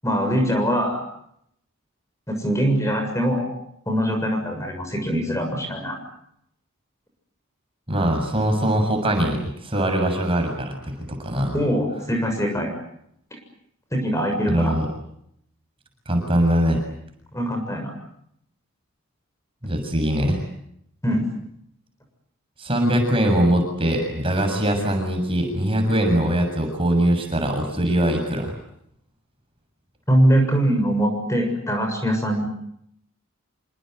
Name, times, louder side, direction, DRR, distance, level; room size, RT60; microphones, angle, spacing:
voice 1, 0.0-1.0 2.3-3.5 3.9-6.0 11.5-12.7 13.9-14.7 17.3-17.9 21.0-21.2 30.1-32.5, equal, 15° left, 4 dB, 7.0 m, -22 dB
voice 2, 7.9-11.6 14.5-14.9 16.1-16.8 19.6-20.4 22.6-28.5, right 1 dB, 25° right, 4 dB, 7.2 m, -22 dB
28.0 x 26.0 x 8.0 m, 0.75 s
head